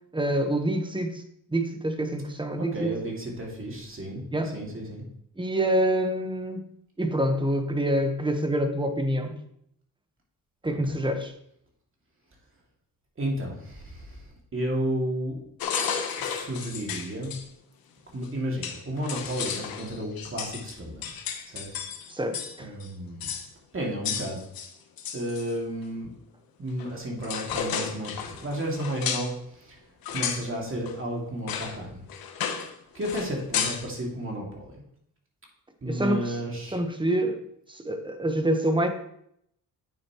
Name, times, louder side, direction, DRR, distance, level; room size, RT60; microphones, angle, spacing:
voice 1, 0.1-1.2 1.5-2.9 4.3-4.5 5.4-6.6 7.0-9.4 10.6-11.3 22.1-22.7 35.9-36.4 36.7-37.4 37.7-38.9, right 1 dB, 15° right, 6 dB, 1.2 m, -26 dB
voice 2, 2.6-4.2 4.5-5.0 10.6-11.0 13.2-14.2 14.5-15.4 16.2-17.3 18.1-21.1 21.5-21.7 22.6-23.3 23.7-24.4 25.1-26.1 26.6-29.8 30.1-32.0 32.9-34.7 35.8-36.8, equal, 35° right, -2 dB, 2.4 m, -32 dB
sound 1, 15.6-17.4 18.2-18.3 18.6-22.6 22.8-22.9 23.2-23.5 24.0-25.5 26.8-26.9 27.2-29.3 30.0-30.5 30.9-31.0 31.5-31.8 32.1-32.7 33.0-33.9, left 7 dB, 80° left, 1.0 m, -33 dB
8.8 x 7.1 x 3.1 m, 0.73 s
cardioid pair, 90°, 35 cm